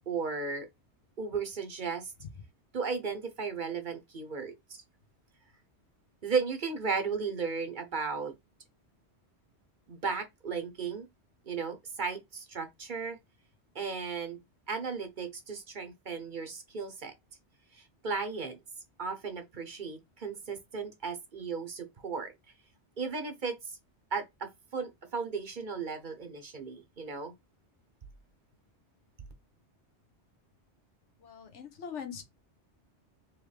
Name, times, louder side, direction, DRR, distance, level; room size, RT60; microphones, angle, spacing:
voice 1, 0.1-0.7 1.2-2.1 2.7-4.8 6.2-8.3 9.9-11.1 11.5-13.2 13.7-14.4 14.7-17.1 17.7-18.6 19.0-22.3 23.0-23.8 24.1-27.3, right 5 dB, 45° right, 0.9 m, -35 dB
voice 2, 31.2-32.2, left 7 dB, 85° left, 1.3 m, -41 dB
4.3 x 3.1 x 3.3 m
omnidirectional pair, 1.2 m